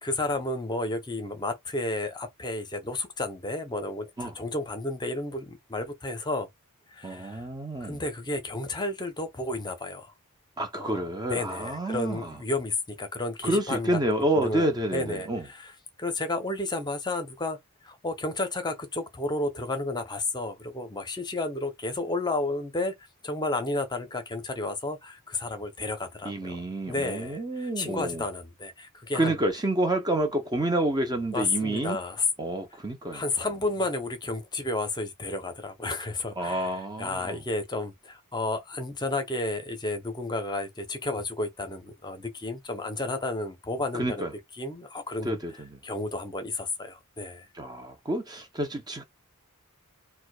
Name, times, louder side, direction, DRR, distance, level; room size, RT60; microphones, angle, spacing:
voice 1, 0.0-6.5 6.9-7.4 7.8-10.1 10.8-14.0 14.3-15.7 16.0-17.6 17.8-26.6 26.9-29.4 31.3-32.2 33.1-44.3 44.6-45.4 45.8-47.5, left 2 dB, 20° left, 0.7 m, -32 dB
voice 2, 7.0-8.0 10.6-12.4 13.4-15.5 26.2-28.3 29.1-32.0 32.4-33.2 36.4-37.4 43.9-44.3 45.2-45.8 47.5-49.0, right 1 dB, 20° right, 0.5 m, -29 dB
4.5 x 2.2 x 2.2 m
head